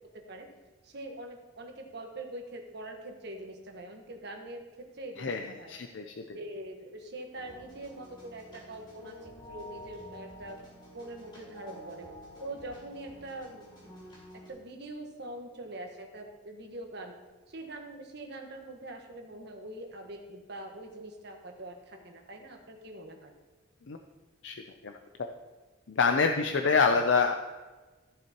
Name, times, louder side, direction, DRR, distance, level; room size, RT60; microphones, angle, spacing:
voice 1, 0.1-0.5 0.8-5.7 6.3-10.6 10.9-12.1 12.4-13.9 14.3-17.1 17.5-23.3, right 1 dB, 60° right, 3 dB, 1.3 m, -43 dB
voice 2, 5.2-6.4 23.9-24.0 24.4-24.6 24.8-24.9 25.2-25.3 25.9-27.3, left 5 dB, 70° left, 4 dB, 0.5 m, -26 dB
sound 1, 7.4-14.5, equal, 25° left, 3.1 m, -49 dB
14.0 x 7.6 x 3.0 m, 1.3 s
head